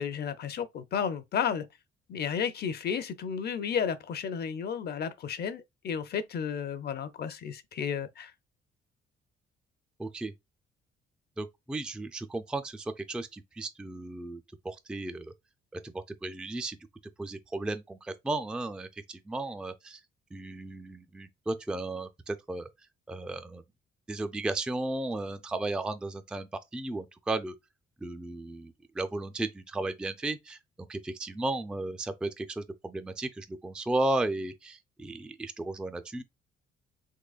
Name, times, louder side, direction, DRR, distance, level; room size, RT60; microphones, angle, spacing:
voice 1, 0.0-1.7 2.1-8.3, left 7 dB, 55° left, 0.6 m, -32 dB
voice 2, 10.0-10.3 11.4-15.3 15.8-16.8 17.2-20.0 20.3-22.7 23.1-23.6 24.1-27.5 28.0-30.6 30.9-36.2, right 2 dB, 5° right, 0.3 m, -34 dB
3.7 x 3.0 x 2.4 m
cardioid pair, 90°, 20 cm